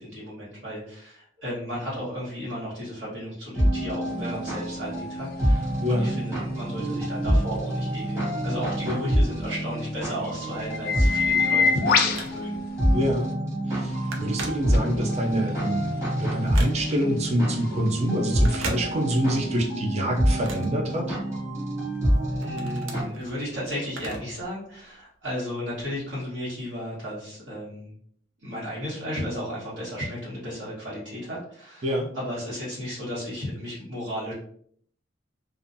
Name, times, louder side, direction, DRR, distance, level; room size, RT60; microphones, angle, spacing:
voice 1, 0.0-12.6 22.4-27.9 28.4-34.3, equal, 70° right, -9 dB, 1.3 m, -34 dB
sound 1, 3.5-23.0, equal, 15° right, 1.0 m, -27 dB
sound 2, 4.1-13.3 13.8-19.7, left 5 dB, 50° left, 0.3 m, -30 dB
Telephone, 11.3-12.7 13.2-13.4 13.7-15.2 15.6-17.1 18.3-19.4 19.7-21.5 21.9-24.5 24.8-24.9 25.7-25.8, right 3 dB, 90° right, 0.5 m, -39 dB
voice 2, 12.9-13.3 13.7-21.2 31.8-32.1, equal, 35° right, 1 dB, 0.4 m, -26 dB
2.4 x 2.2 x 2.5 m, 0.62 s
head